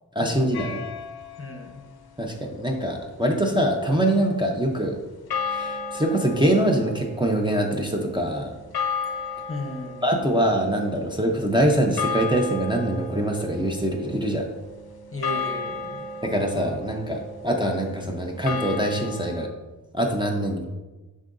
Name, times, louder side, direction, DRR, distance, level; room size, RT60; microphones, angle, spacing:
voice 1, 0.1-0.8 2.2-5.0 5.4-8.5 10.0-14.5 16.2-19.5 19.9-20.6, right 1 dB, 10° right, 0 dB, 0.7 m, -24 dB
sound 1, 0.5-1.6 5.3-19.5, left 4 dB, 65° left, 0.5 m, -34 dB
voice 2, 1.4-1.8 9.5-10.3 15.1-16.1, left 1 dB, 35° left, 2 dB, 1.0 m, -35 dB
9.9 x 3.8 x 2.6 m, 1.2 s
wide cardioid pair, 60°, 40 cm